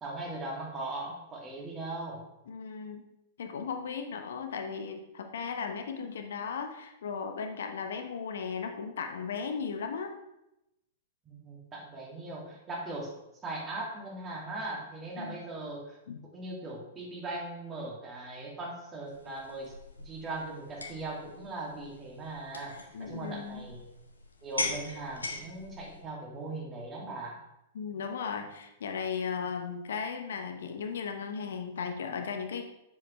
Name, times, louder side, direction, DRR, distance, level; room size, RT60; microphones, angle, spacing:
voice 1, 0.0-2.2 11.3-13.1 13.4-16.0 16.3-23.8 24.4-27.4, right 2 dB, 20° right, -2 dB, 2.4 m, -39 dB
voice 2, 2.5-3.0 3.4-10.1 15.2-15.3 16.1-16.2 22.9-23.6 27.7-32.7, left 6 dB, 60° left, 6 dB, 0.8 m, -36 dB
sound 1, 19.1-26.0, left 3 dB, 75° left, 1.2 m, -41 dB
7.6 x 7.1 x 3.2 m, 0.89 s
figure-of-eight pair, 100°, 0 cm